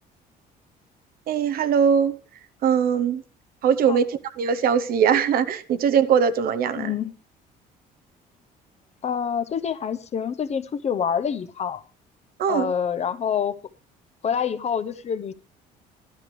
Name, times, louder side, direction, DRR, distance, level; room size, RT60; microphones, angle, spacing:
voice 1, 1.3-2.2 2.6-3.2 3.6-6.9 12.4-12.7, right 7 dB, 60° right, 0.8 m, -21 dB
voice 2, 6.8-7.1 9.0-11.8 12.5-13.5 14.2-15.3, left 7 dB, 40° left, 0.7 m, -26 dB
12.0 x 12.0 x 3.2 m
cardioid pair, 110°, 17 cm